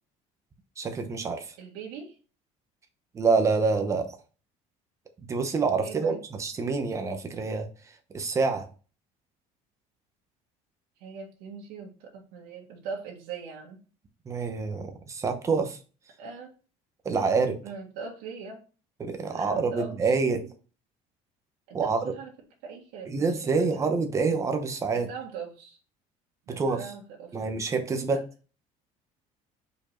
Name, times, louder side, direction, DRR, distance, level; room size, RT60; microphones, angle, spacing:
voice 1, 0.8-1.5 3.1-4.1 5.3-7.7 8.1-8.7 14.3-15.8 17.0-17.6 19.0-20.5 21.7-22.1 23.1-25.1 26.6-26.9 27.3-28.2, right 4 dB, 20° right, 0.8 m, -27 dB
voice 2, 1.6-2.1 5.8-6.2 11.0-13.8 16.2-16.5 17.2-17.3 17.6-18.6 19.3-20.0 21.7-22.3 22.6-23.8 24.9-25.8 26.5-27.4 28.1-28.2, right 5 dB, 85° right, 1.8 m, -41 dB
5.2 x 4.6 x 4.3 m
cardioid pair, 175°, 15 cm